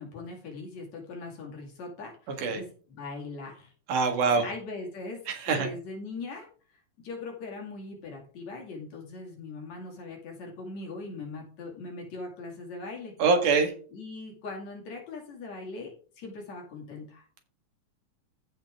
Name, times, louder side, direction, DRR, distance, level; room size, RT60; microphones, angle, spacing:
voice 1, 0.0-3.7 4.4-5.2 5.5-6.5 7.0-13.1 13.9-17.2, left 3 dB, 65° left, 0 dB, 3.7 m, -40 dB
voice 2, 3.9-4.5 5.3-5.7 13.2-13.7, right 4 dB, 85° right, 4 dB, 3.2 m, -24 dB
15.0 x 5.2 x 3.6 m, 0.41 s
omnidirectional pair, 3.5 m